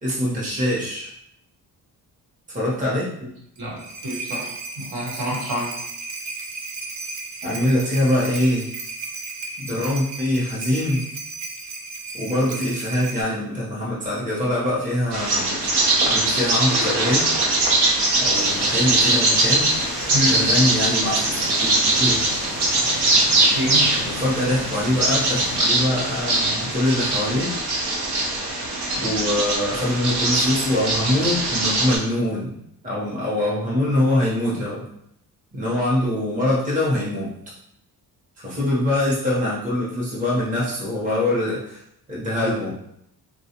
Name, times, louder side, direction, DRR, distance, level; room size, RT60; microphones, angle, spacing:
voice 1, 0.0-1.1 2.5-3.1 7.4-8.7 9.6-11.1 12.2-15.5 16.1-17.3 18.2-19.7 20.3-21.3 21.6-22.2 24.0-27.5 29.0-32.6 32.8-34.8 35.5-37.4 38.4-41.8 42.1-42.8, left 1 dB, 20° right, -6 dB, 0.9 m, -23 dB
sound 1, 3.6-13.2, right 3 dB, 45° right, 0.4 m, -34 dB
voice 2, 3.6-5.7 20.1-20.5 23.5-23.9, equal, 65° right, -4 dB, 1.3 m, -27 dB
Bird vocalization bird call bird song, 15.1-32.0, right 2 dB, 85° right, 0.9 m, -21 dB
sound 2, 18.3-25.6, left 3 dB, 35° left, 0.4 m, -36 dB
3.7 x 2.3 x 2.8 m, 0.75 s
wide cardioid pair, 155°, 39 cm